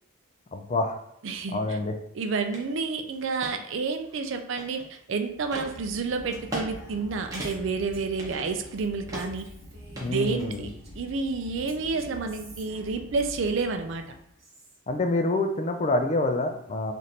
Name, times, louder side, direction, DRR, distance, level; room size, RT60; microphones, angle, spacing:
voice 1, 0.5-1.0 1.5-1.9 10.0-10.7 14.9-16.9, left 2 dB, 35° left, 6 dB, 0.3 m, -27 dB
voice 2, 1.2-1.6 2.2-9.5 10.1-10.7 10.9-14.0, right 4 dB, 65° right, 6 dB, 0.4 m, -29 dB
sound 1, 2.5-2.7 3.1-3.5 4.1-5.0 5.5-5.7 6.3-6.7 6.9-7.0 7.3-7.8 8.2-8.8 9.1-9.5 9.9-10.7, right 1 dB, 15° right, 0.8 m, -37 dB
sound 2, 5.2-14.3, equal, 60° left, 0.8 m, -46 dB
Female speech woman speaking, 5.8-11.2 11.7-14.8, right 2 dB, 50° right, 1.1 m, -53 dB
3.1 x 2.6 x 4.2 m, 0.76 s
head